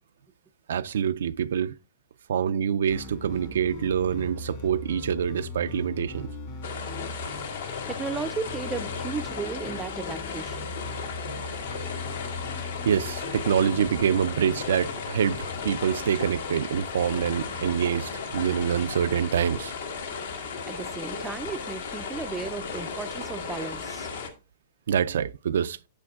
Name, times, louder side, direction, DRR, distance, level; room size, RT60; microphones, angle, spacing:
voice 1, 0.7-1.7 2.3-6.3 12.9-19.7 24.9-25.8, right 8 dB, 85° right, 0.3 m, -26 dB
sound 1, 2.9-15.6, left 3 dB, 50° left, 1.9 m, -39 dB
sound 2, 6.6-24.3, left 5 dB, 80° left, 1.7 m, -35 dB
voice 2, 7.6-10.7 20.5-24.1, right 5 dB, 10° right, 0.3 m, -35 dB
8.7 x 7.6 x 2.3 m
supercardioid pair, 155°, 0 cm